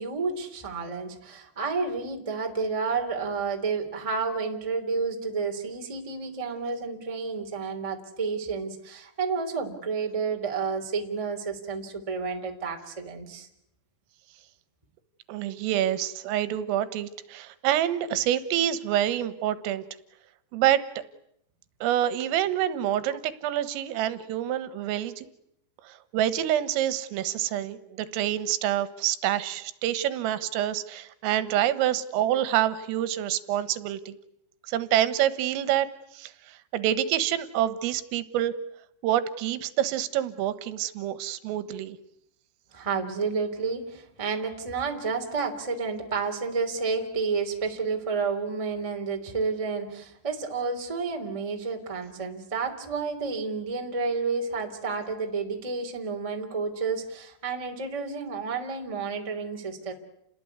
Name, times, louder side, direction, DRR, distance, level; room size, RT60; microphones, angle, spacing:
voice 1, 0.0-13.5 42.7-59.9, right 4 dB, 10° right, 3 dB, 2.1 m, -30 dB
voice 2, 15.3-19.8 20.5-21.0 21.8-25.3 25.8-34.2 34.7-35.9 36.1-38.5 39.0-42.0, right 11 dB, 85° right, 15 dB, 3.9 m, -27 dB
29.5 x 20.0 x 9.5 m, 0.77 s
omnidirectional pair, 5.8 m